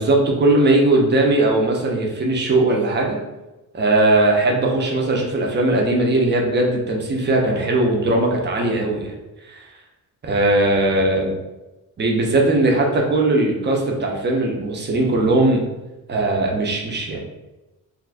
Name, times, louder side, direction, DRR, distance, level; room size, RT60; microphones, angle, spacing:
voice 1, 0.0-3.2 3.7-9.1 9.6-9.7 10.2-11.3 12.0-15.6 16.1-17.2, right 2 dB, 30° right, 0 dB, 0.6 m, -19 dB
2.6 x 2.5 x 3.3 m, 1.0 s
wide cardioid pair, 150°, 38 cm